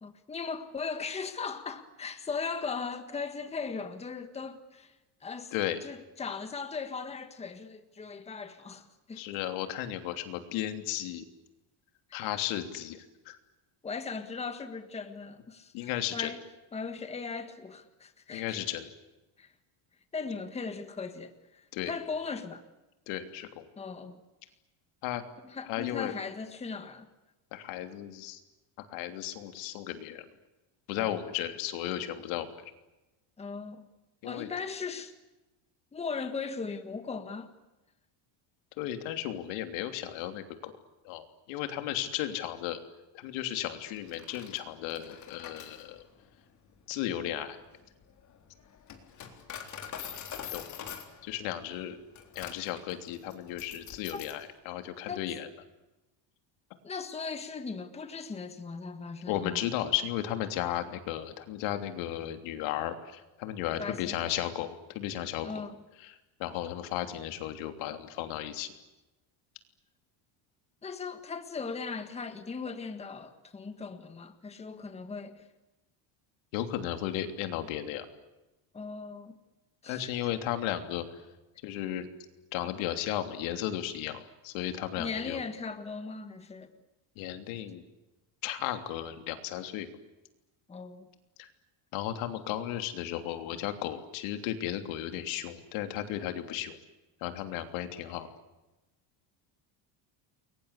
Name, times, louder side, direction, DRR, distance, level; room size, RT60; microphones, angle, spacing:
voice 1, 0.0-5.5 5.8-9.2 12.1-12.2 13.8-16.4 16.7-18.6 19.4-19.5 20.1-22.6 23.8-24.2 25.4-27.1 30.9-31.2 33.4-33.9 34.2-35.1 35.9-37.5 54.1-54.2 55.1-55.3 56.8-59.6 63.8-64.2 65.4-65.8 70.8-75.5 78.7-79.4 79.8-80.1 84.9-86.7 90.7-91.1, left 5 dB, 15° left, 1.6 m, -38 dB
voice 2, 9.1-11.3 12.1-13.4 15.7-16.3 18.3-18.9 21.7-21.9 23.1-23.6 25.0-25.2 25.7-26.1 27.5-28.4 28.8-30.2 30.9-32.5 34.2-34.5 38.8-40.8 41.0-42.8 43.1-46.0 46.9-47.6 50.5-50.8 51.2-52.0 52.3-55.5 59.3-65.6 66.0-66.1 66.4-68.7 76.5-78.1 79.9-81.0 81.6-82.1 82.5-85.4 87.2-87.8 88.4-89.9 91.4-91.5 91.9-96.8 97.2-98.3, left 12 dB, 80° left, 3.2 m, -34 dB
Coin (dropping), 44.0-54.5, left 8 dB, 40° left, 3.8 m, -45 dB
29.5 x 23.0 x 8.4 m
cardioid pair, 170°, 47 cm